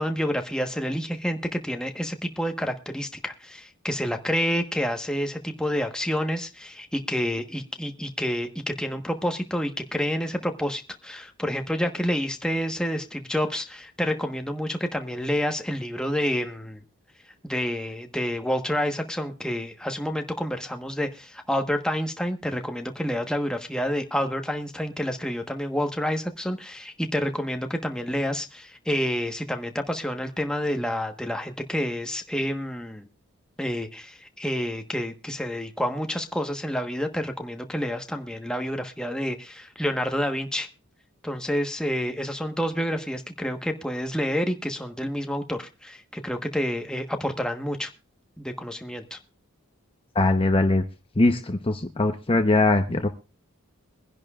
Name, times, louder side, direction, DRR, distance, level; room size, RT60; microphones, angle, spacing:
voice 1, 0.0-16.8 17.4-33.1 33.6-40.7 41.2-47.9 48.4-49.2, equal, 5° left, 5 dB, 1.2 m, -29 dB
voice 2, 50.1-50.8 51.2-53.1, left 2 dB, 25° left, 6 dB, 0.9 m, -21 dB
23.5 x 10.5 x 2.4 m, 0.29 s
head